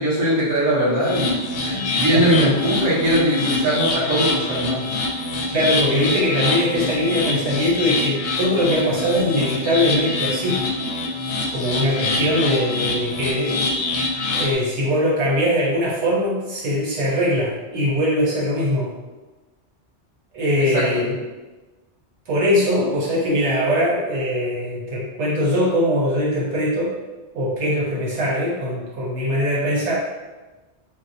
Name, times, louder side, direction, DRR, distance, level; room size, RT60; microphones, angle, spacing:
voice 1, 0.0-1.3 1.9-4.9 11.7-11.8 12.1-12.2 20.7-20.8, right 1 dB, 15° right, -10 dB, 1.1 m, -20 dB
sound 1, 1.0-14.5, left 2 dB, 70° left, 0.8 m, -25 dB
voice 2, 1.6-2.5 5.5-10.6 11.5-18.9 20.3-21.2 22.3-26.9 27.3-30.0, equal, 75° right, -7 dB, 1.2 m, -22 dB
4.6 x 2.1 x 2.7 m, 1.2 s
omnidirectional pair, 1.2 m